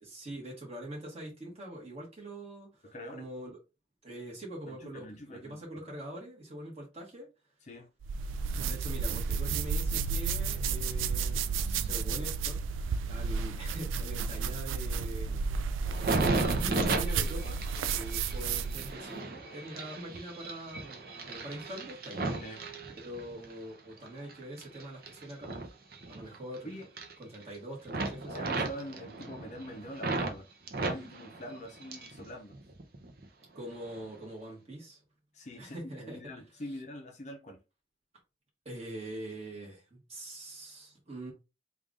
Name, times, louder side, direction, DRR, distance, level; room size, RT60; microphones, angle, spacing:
voice 1, 0.0-3.6 4.0-7.3 8.6-22.3 23.0-25.5 26.1-26.7 27.2-28.5 33.5-35.0 35.6-36.2 38.6-41.3, right 1 dB, 30° right, 1.5 m, -44 dB
voice 2, 2.8-3.3 4.7-5.7 7.7-7.9 22.4-22.6 26.6-26.9 28.3-30.5 30.7-32.5 35.3-37.6, equal, 35° left, 0.6 m, -44 dB
sound 1, 8.0-19.0, right 5 dB, 90° right, 0.3 m, -32 dB
sound 2, 15.9-23.5 24.0-26.6 26.8-27.6 27.9-30.4 30.7-32.2 32.5-33.3 33.8-34.0, right 2 dB, 50° right, 0.6 m, -35 dB
3.4 x 2.5 x 3.7 m
head